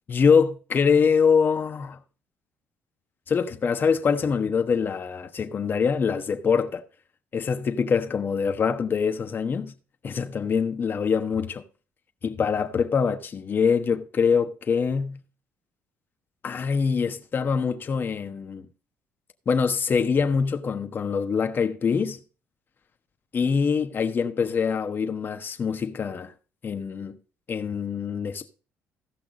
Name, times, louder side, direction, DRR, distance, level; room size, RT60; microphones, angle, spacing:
voice 1, 0.1-2.0 3.3-6.8 7.3-9.7 10.0-11.6 12.2-15.2 16.4-18.7 19.5-22.2 23.3-26.3 26.6-27.1 27.5-28.5, left 6 dB, 40° left, 1.1 m, -24 dB
16.0 x 5.9 x 4.0 m
cardioid pair, 95°, 5 cm